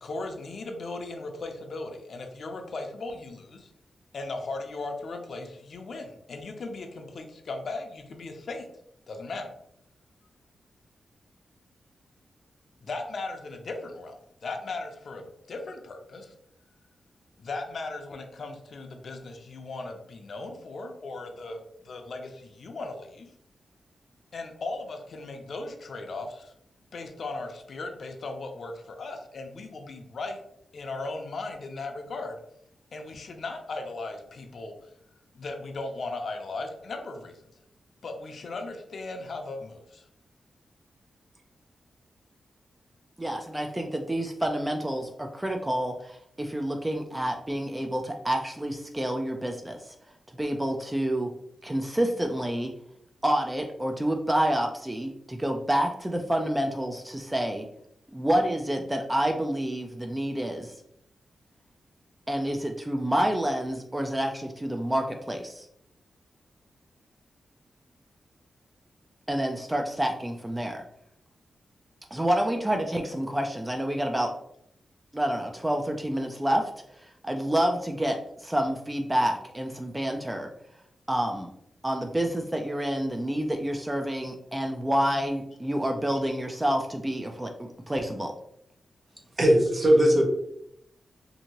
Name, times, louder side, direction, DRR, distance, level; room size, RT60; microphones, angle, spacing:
voice 1, 0.0-3.7 4.1-8.7 9.1-9.5 12.8-16.3 17.4-23.3 24.3-26.5 26.9-30.4 30.7-32.4 32.9-34.9 35.3-37.4 38.0-40.1, left 3 dB, 65° left, 4 dB, 0.4 m, -37 dB
voice 2, 43.2-49.9 50.4-51.3 51.6-52.7 53.2-57.7 58.1-60.7 62.3-65.7 69.3-70.8 72.1-74.3 75.1-76.7 77.0-80.5 81.1-81.5 81.8-88.3, right 1 dB, 15° right, 3 dB, 0.3 m, -28 dB
voice 3, 89.4-90.2, equal, 45° right, 1 dB, 0.7 m, -19 dB
2.7 x 2.6 x 2.8 m, 0.74 s
cardioid pair, 60°, 0 cm